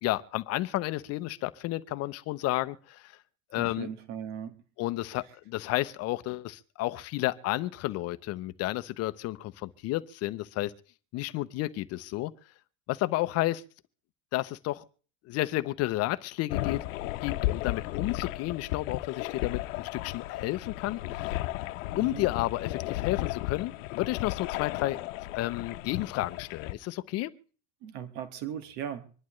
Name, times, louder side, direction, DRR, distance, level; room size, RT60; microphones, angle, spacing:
voice 1, 0.0-3.1 3.5-3.9 4.8-10.7 11.1-12.3 12.9-13.6 14.3-14.8 15.3-16.8 17.2-21.4 21.9-25.0 25.3-27.3, left 17 dB, 40° left, 0.8 m, -31 dB
voice 2, 3.6-4.5 21.9-22.2 27.8-29.1, right 9 dB, 65° right, 1.9 m, -38 dB
sound 1, 16.5-26.7, left 17 dB, 85° left, 0.9 m, -34 dB
25.5 x 11.0 x 3.2 m
cardioid pair, 165°, 38 cm